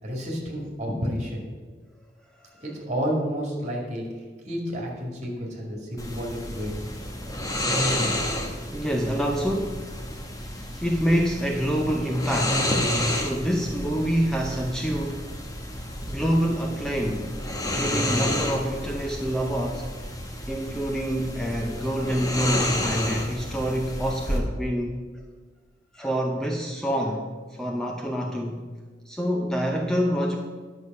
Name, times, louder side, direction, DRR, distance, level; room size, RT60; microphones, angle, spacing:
voice 1, 0.0-1.4 2.6-4.1 4.4-6.7, equal, 40° right, -1 dB, 2.3 m, -30 dB
sound 1, 6.0-24.4, left 1 dB, 20° left, 1.1 m, -30 dB
voice 2, 8.7-9.8 10.4-12.7 13.1-15.3 16.1-17.3 17.7-19.9 20.5-25.0 25.9-27.3 27.6-28.7 29.1-30.4, equal, 5° left, 1 dB, 0.6 m, -27 dB
10.5 x 6.4 x 5.4 m, 1.4 s
head